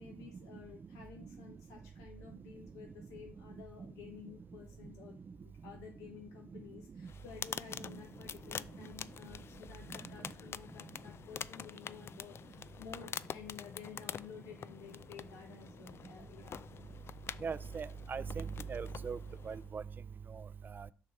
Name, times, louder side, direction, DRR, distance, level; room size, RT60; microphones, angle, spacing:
voice 1, 0.0-16.7, left 7 dB, 75° left, 1.2 m, -52 dB
sound 1, 7.1-19.7, left 8 dB, 45° left, 0.4 m, -47 dB
voice 2, 17.4-19.2 19.5-19.8 20.3-20.4 20.8-20.9, right 6 dB, 35° right, 0.5 m, -39 dB
6.3 x 3.6 x 5.8 m
hypercardioid pair, 55°, 6 cm